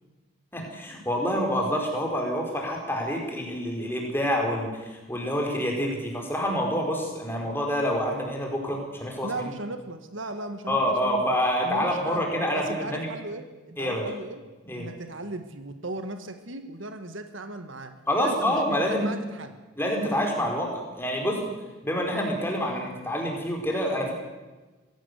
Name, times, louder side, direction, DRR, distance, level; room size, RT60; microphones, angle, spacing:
voice 1, 0.5-9.4 10.7-13.1 13.8-14.0 14.7-14.9 18.1-19.1 19.8-21.5 21.8-24.1, equal, 10° left, 1 dB, 5.0 m, -27 dB
voice 2, 9.2-11.2 11.6-12.3 12.5-14.5 14.7-19.6, right 2 dB, 65° right, 8 dB, 1.7 m, -37 dB
23.5 x 16.5 x 8.2 m, 1.2 s
head